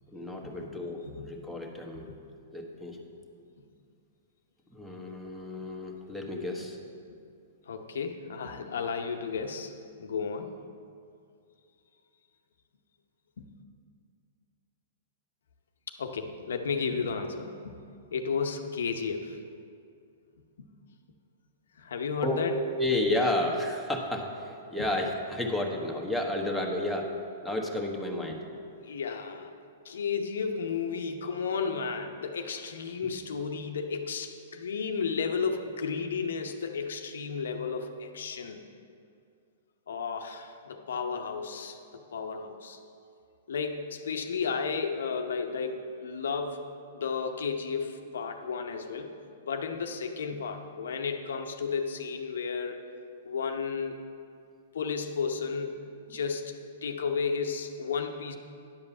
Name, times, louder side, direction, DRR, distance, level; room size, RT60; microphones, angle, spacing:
voice 1, 0.1-2.1 2.5-3.0 4.7-6.8 22.2-22.4 22.8-27.1 27.4-28.4, left 1 dB, ahead, -2 dB, 1.1 m, -31 dB
voice 2, 7.7-9.7 10.0-10.5 13.4-13.5 15.9-17.6 18.1-19.4 20.6-20.7 21.8-22.5 28.8-29.5 29.8-38.6 39.9-42.8 43.5-49.1 49.4-52.8 53.2-54.0 54.7-55.8 56.1-58.4, left 5 dB, 80° left, 5 dB, 0.7 m, -33 dB
10.0 x 5.3 x 7.0 m, 2.4 s
hypercardioid pair, 130°, 0 cm